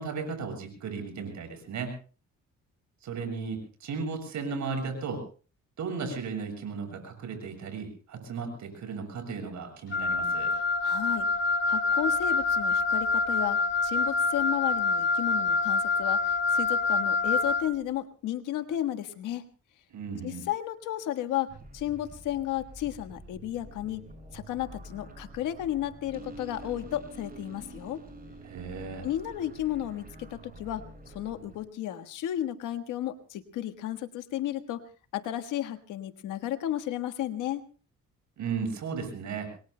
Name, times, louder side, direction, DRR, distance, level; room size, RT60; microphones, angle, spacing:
voice 1, 0.0-1.9 3.0-5.2 5.8-10.5 19.9-20.5 28.4-29.1 38.4-39.5, right 5 dB, 70° right, 4 dB, 7.7 m, -35 dB
Wind instrument woodwind instrument, 9.9-17.7, left 4 dB, 40° left, 1.3 m, -26 dB
voice 2, 10.5-11.3 11.7-19.5 20.2-28.0 29.0-34.8 35.1-37.6, left 12 dB, 90° left, 9 dB, 1.5 m, -33 dB
sound 1, 21.5-31.6, right 1 dB, 30° right, 6.3 m, -47 dB
27.5 x 22.0 x 2.2 m, 0.37 s
cardioid pair, 90°, 30 cm